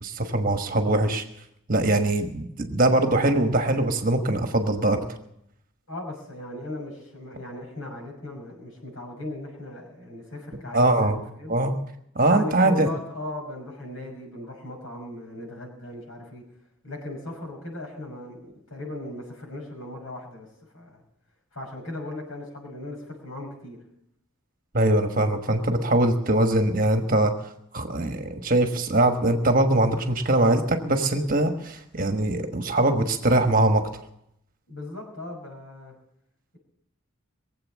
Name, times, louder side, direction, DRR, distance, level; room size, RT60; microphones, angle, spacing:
voice 1, 0.0-1.2 1.7-5.0 10.7-11.2 11.5-11.7 12.1-12.9 24.7-27.3 27.7-34.0, right 1 dB, 40° right, 6 dB, 1.3 m, -22 dB
voice 2, 5.9-11.6 12.2-16.4 16.8-20.5 20.7-21.0 21.5-23.8 34.7-35.9, left 1 dB, 70° left, 1 dB, 5.9 m, -38 dB
22.0 x 7.9 x 7.4 m, 0.77 s
head